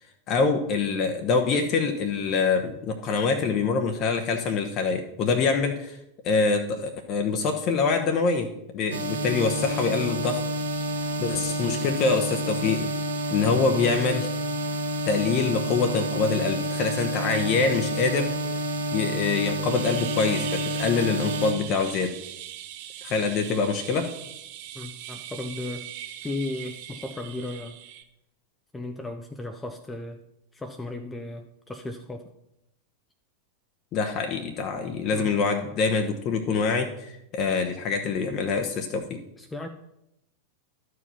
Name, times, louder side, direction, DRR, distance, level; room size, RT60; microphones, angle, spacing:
voice 1, 0.3-6.0 6.2-10.4 11.2-12.9 13.3-14.3 15.0-18.3 18.9-22.2 23.0-24.1 33.9-39.2, left 4 dB, 35° left, 4 dB, 0.9 m, -25 dB
sound 1, 8.9-21.5, right 1 dB, 65° right, 1.2 m, -29 dB
sound 2, 19.7-28.0, right 11 dB, 45° right, 0.8 m, -40 dB
voice 2, 24.7-25.9 26.2-27.8 28.7-30.2 30.5-32.2 35.1-35.3 39.4-39.7, left 2 dB, 10° left, 6 dB, 0.6 m, -35 dB
12.5 x 4.8 x 5.6 m, 0.84 s
figure-of-eight pair, 90°, 0 cm